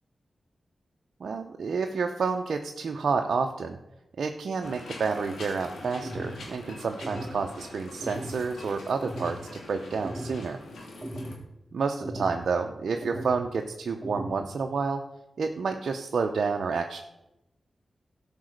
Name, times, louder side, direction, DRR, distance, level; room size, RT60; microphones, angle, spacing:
voice 1, 1.2-3.8 4.2-9.4 9.7-10.6 11.7-15.0 15.4-17.0, right 5 dB, 75° right, 3 dB, 0.7 m, -29 dB
sound 1, 4.6-11.4, left 2 dB, 85° left, 2.2 m, -44 dB
sound 2, 6.0-6.4 7.0-7.4 8.0-8.4 9.0-9.4 10.0-10.4 11.0-11.4 12.0-12.4 13.0-13.4 14.0-14.4, right 1 dB, 15° right, 2.8 m, -37 dB
13.0 x 5.4 x 6.5 m, 0.90 s
cardioid pair, 40°, 0 cm